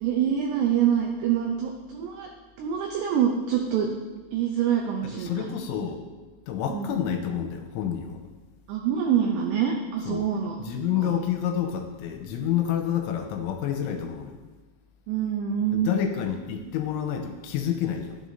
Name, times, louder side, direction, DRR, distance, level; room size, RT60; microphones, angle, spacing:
voice 1, 0.0-2.3 2.6-3.9 4.3-5.5 6.7-6.9 8.7-10.6 11.0-11.1 15.1-15.9, right 8 dB, 85° right, 1 dB, 2.3 m, -25 dB
voice 2, 5.0-6.0 6.5-8.2 10.1-10.3 10.6-14.3 15.7-18.2, left 9 dB, 85° left, 4 dB, 3.0 m, -29 dB
12.5 x 7.5 x 2.7 m, 1.2 s
omnidirectional pair, 5.7 m